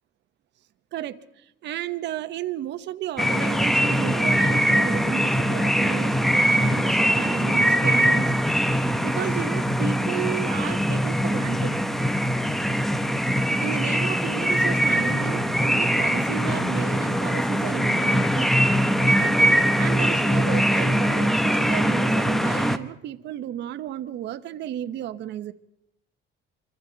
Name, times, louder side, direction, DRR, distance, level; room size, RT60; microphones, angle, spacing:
voice 1, 0.9-11.8 13.6-18.5 19.0-25.5, right 12 dB, 60° right, 10 dB, 1.1 m, -33 dB
sound 1, 3.2-22.8, equal, ahead, 0.9 m, -22 dB
26.0 x 25.0 x 4.0 m, 0.81 s
cardioid pair, 135°, 20 cm